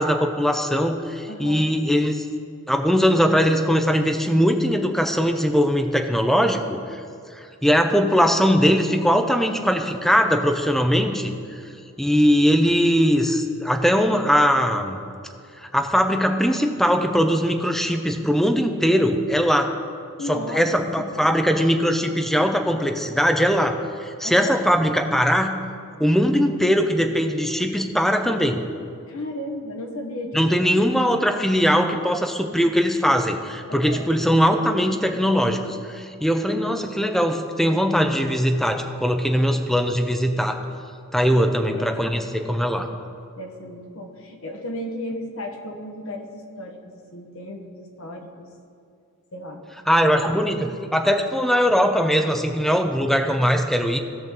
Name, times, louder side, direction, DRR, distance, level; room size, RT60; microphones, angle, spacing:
voice 1, 0.0-2.2 2.7-7.0 7.3-11.3 12.0-15.0 15.6-19.7 20.3-25.6 26.0-28.6 30.3-40.6 41.1-42.2 42.5-42.9 49.9-54.0, equal, ahead, 5 dB, 0.6 m, -20 dB
voice 2, 1.3-1.7 20.2-20.6 21.0-21.3 24.2-24.6 29.1-30.4 33.7-34.1 41.3-43.0 43.4-48.5 49.3-49.6, left 1 dB, 65° left, 3 dB, 1.2 m, -35 dB
16.5 x 6.0 x 3.7 m, 2.4 s
head